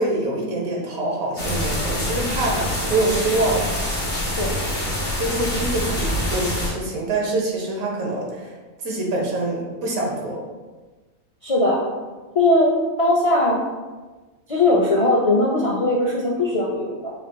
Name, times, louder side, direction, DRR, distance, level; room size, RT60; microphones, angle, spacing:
voice 1, 0.0-3.7 5.2-8.5 8.8-10.4, right 2 dB, 85° right, -1 dB, 1.4 m, -25 dB
sound 1, 1.4-6.7, left 1 dB, 25° left, 1.3 m, -25 dB
voice 2, 11.4-11.8 12.3-12.7 13.0-13.6 14.5-17.1, left 2 dB, 60° left, -3 dB, 0.3 m, -19 dB
5.4 x 4.1 x 2.2 m, 1.3 s
omnidirectional pair, 1.4 m